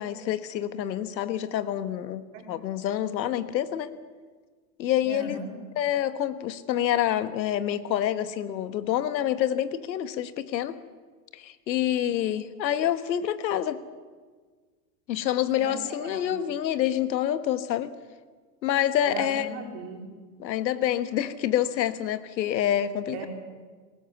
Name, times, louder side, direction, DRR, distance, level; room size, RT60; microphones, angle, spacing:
voice 1, 0.0-2.2 2.5-3.9 4.8-5.4 5.8-10.8 11.3-13.8 15.1-17.9 18.6-19.6 20.4-23.3, left 11 dB, 90° left, 12 dB, 1.5 m, -27 dB
voice 2, 5.0-5.5 11.9-12.3 15.5-16.3 19.0-20.0 23.1-23.3, right 3 dB, 35° right, 2 dB, 4.0 m, -39 dB
21.0 x 19.0 x 7.2 m, 1.5 s
supercardioid pair, 175°, 50 cm